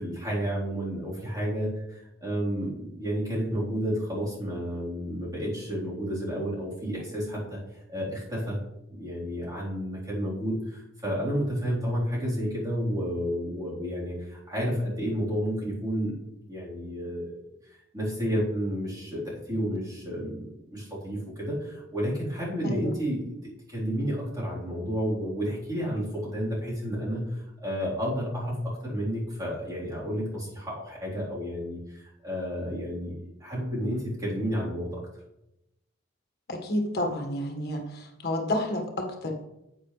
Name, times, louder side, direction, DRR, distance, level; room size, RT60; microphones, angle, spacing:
voice 1, 0.0-1.7 2.2-7.6 7.9-8.6 8.9-16.2 16.5-17.4 17.9-23.3 23.7-33.1 33.4-35.0, equal, 20° right, -7 dB, 3.9 m, -31 dB
voice 2, 22.6-22.9 36.5-39.3, left 1 dB, 55° left, 2 dB, 1.7 m, -30 dB
9.9 x 8.7 x 3.3 m, 0.87 s
head